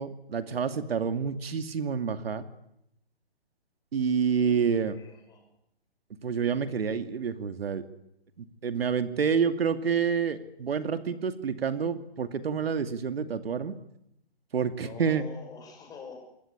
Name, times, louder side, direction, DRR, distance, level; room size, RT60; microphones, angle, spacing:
voice 1, 0.0-2.4 3.9-4.9 6.2-7.8 8.6-13.7 14.5-15.2, right 6 dB, 65° right, 9 dB, 2.5 m, -28 dB
voice 2, 4.4-5.4 14.8-16.2, left 5 dB, 10° left, 3 dB, 6.1 m, -46 dB
26.5 x 22.0 x 9.9 m, 0.79 s
hypercardioid pair, 155°, 32 cm